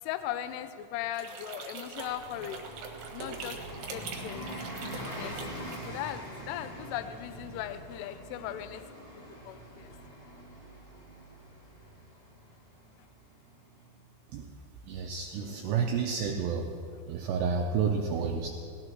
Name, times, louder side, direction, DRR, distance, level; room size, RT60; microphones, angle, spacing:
voice 1, 0.0-2.6 3.1-4.5 5.2-5.4 5.9-8.8 9.5-10.0, left 12 dB, 85° left, 10 dB, 3.1 m, -38 dB
sound 1, 1.1-6.1, right 4 dB, 65° right, 2.3 m, -43 dB
Bus, 1.9-14.2, equal, 15° left, 1.8 m, -44 dB
voice 2, 14.9-16.7 17.1-18.5, right 6 dB, 85° right, 2 dB, 2.4 m, -30 dB
19.0 x 18.0 x 3.1 m, 2.3 s
omnidirectional pair, 5.9 m